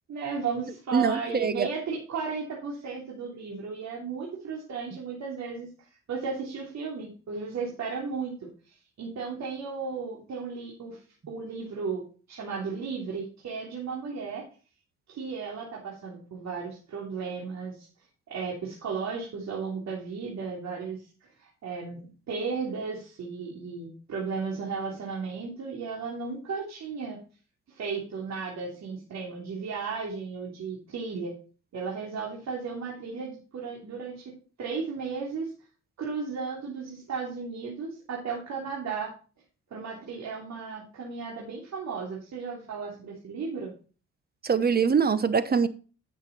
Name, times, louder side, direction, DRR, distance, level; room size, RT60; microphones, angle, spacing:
voice 1, 0.1-5.7 6.1-11.0 11.3-14.4 15.1-17.9 18.3-22.0 22.3-27.2 27.7-31.3 31.7-34.3 34.6-35.5 36.0-39.1 39.7-43.7, right 5 dB, 65° right, 3.2 m, -35 dB
voice 2, 0.9-1.7 44.4-45.7, right 6 dB, 30° right, 1.1 m, -23 dB
10.0 x 7.3 x 4.3 m
cardioid pair, 90°, 30 cm